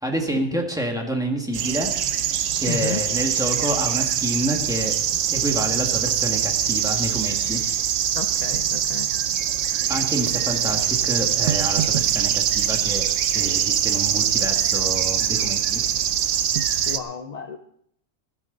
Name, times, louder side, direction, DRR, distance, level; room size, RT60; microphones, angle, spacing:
voice 1, 0.0-1.9 2.5-4.9 5.3-7.6 9.9-13.1 13.3-15.8, right 1 dB, 5° right, 1 dB, 1.8 m, -28 dB
sound 1, 1.5-17.0, right 9 dB, 75° right, 1.0 m, -23 dB
voice 2, 2.7-3.0 8.1-9.1 16.9-17.6, left 5 dB, 40° left, 7 dB, 0.7 m, -32 dB
16.5 x 12.0 x 3.9 m, 0.69 s
omnidirectional pair, 1.4 m